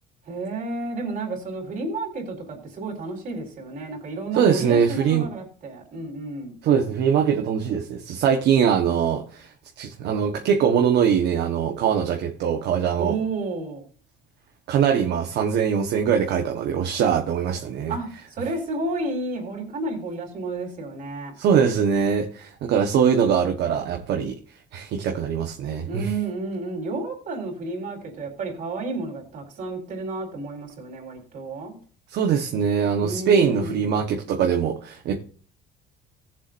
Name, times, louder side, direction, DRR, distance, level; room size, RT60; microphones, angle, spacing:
voice 1, 0.3-6.6 13.0-13.8 17.9-21.3 25.9-31.8 33.0-33.9, right 2 dB, 45° right, 4.1 m, -31 dB
voice 2, 4.3-5.3 6.6-9.5 9.8-13.2 14.7-18.0 21.4-24.4 24.7-26.1 32.1-35.2, right 7 dB, 60° right, 1.3 m, -22 dB
18.5 x 7.5 x 2.6 m
cardioid pair, 165°, 19 cm